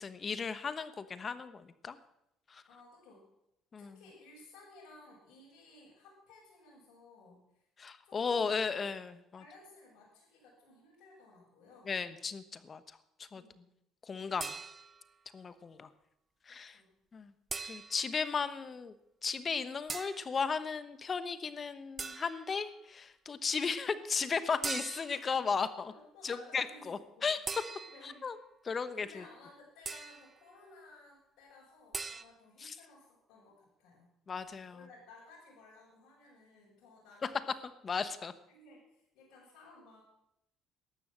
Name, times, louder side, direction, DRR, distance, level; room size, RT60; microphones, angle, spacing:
voice 1, 0.0-2.0 2.5-2.6 3.7-4.0 7.8-9.4 11.9-12.8 13.2-13.4 14.0-14.5 15.3-15.9 16.5-16.8 17.1-17.3 17.7-18.9 19.2-25.9 26.2-27.4 28.0-28.4 28.6-29.2 32.6-32.8 34.3-34.8 37.2-37.3 37.8-38.3, left 5 dB, 40° left, 13 dB, 1.1 m, -35 dB
voice 2, 2.7-3.3 3.8-7.6 8.0-8.5 9.3-12.0 13.3-13.7 16.5-16.9 25.9-27.3 27.9-28.3 28.9-34.1 34.7-37.5 37.9-38.1 38.5-40.0, left 2 dB, 75° left, -7 dB, 6.5 m, -57 dB
sound 1, 14.4-15.1 17.5-18.1 19.9-20.3 22.0-22.5 24.6-25.3 27.5-28.2 29.9-30.3 31.9-32.2, right 4 dB, 30° right, 0.9 m, -40 dB
13.5 x 11.0 x 7.5 m, 0.80 s
supercardioid pair, 75°, 0 cm